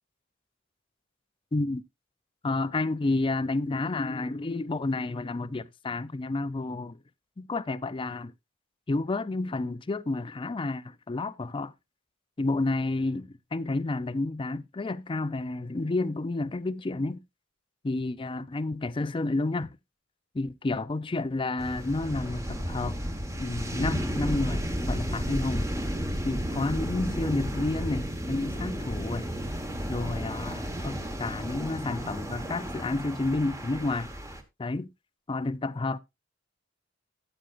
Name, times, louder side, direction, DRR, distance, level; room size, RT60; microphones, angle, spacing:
voice 1, 1.5-1.8 2.4-7.0 7.4-8.3 8.9-11.7 12.4-17.2 17.8-19.8 20.3-23.0 23.4-25.7 26.2-29.3 29.9-34.1 34.6-34.9 35.3-36.0, left 2 dB, 25° left, 0.5 m, -30 dB
sound 1, 21.6-34.4, equal, 15° right, 1.2 m, -33 dB
13.0 x 8.9 x 2.5 m
head